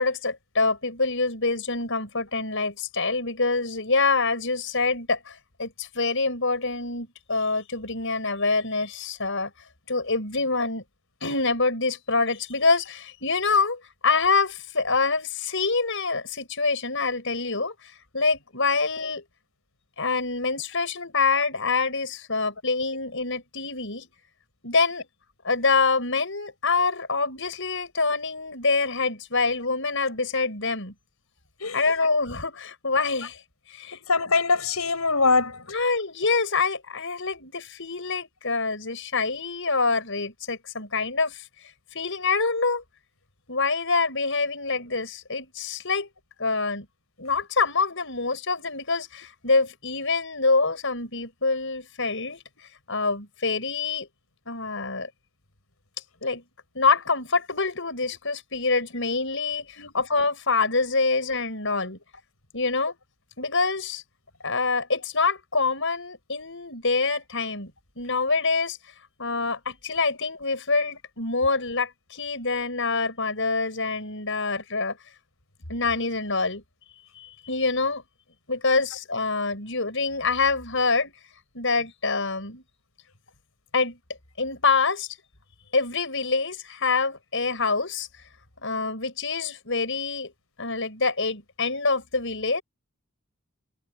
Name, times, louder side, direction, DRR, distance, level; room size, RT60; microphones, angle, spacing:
voice 1, 0.0-9.5 9.9-10.8 11.2-19.2 20.0-24.1 24.6-25.1 25.4-30.9 31.7-33.4 33.7-34.0 35.7-42.8 43.5-46.1 46.4-46.9 47.2-54.1 54.5-55.1 56.2-56.4 56.7-62.0 62.5-63.0 63.4-64.0 64.4-67.7 68.0-68.8 69.2-75.0 75.7-76.6 77.2-78.0 78.5-81.1 81.5-82.6 83.7-84.0 84.4-85.1 85.7-88.1 88.6-90.3 90.6-92.6, left 4 dB, 60° left, 7.5 m, -26 dB
voice 2, 33.9-35.6 59.8-59.9, left 4 dB, 80° left, 7.1 m, -23 dB
head